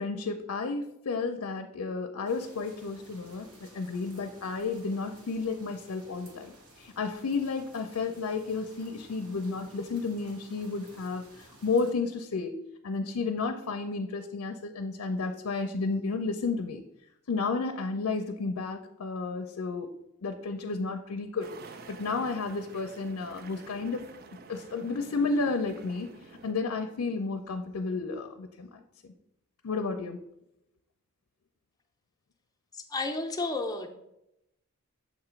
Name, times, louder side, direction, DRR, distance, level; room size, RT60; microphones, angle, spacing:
voice 1, 0.0-12.6 12.8-16.8 17.3-19.9 20.2-21.5 21.9-24.0 24.5-26.1 26.4-28.8 29.6-30.2, left 4 dB, 70° left, 5 dB, 0.5 m, -32 dB
sound 1, 2.2-11.9, right 1 dB, 80° right, 1.3 m, -55 dB
sound 2, 21.4-26.5, right 4 dB, 45° right, 0.4 m, -49 dB
voice 2, 32.7-33.9, left 3 dB, 15° left, 4 dB, 0.6 m, -32 dB
7.0 x 2.9 x 5.6 m, 0.83 s
head